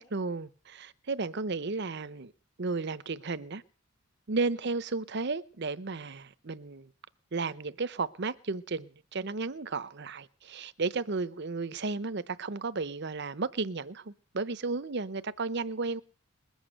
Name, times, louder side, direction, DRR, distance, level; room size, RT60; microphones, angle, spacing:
voice 1, 0.0-2.3 2.6-3.6 4.3-6.9 7.3-16.0, right 3 dB, 50° right, 0.8 m, -33 dB
21.0 x 8.1 x 6.5 m
head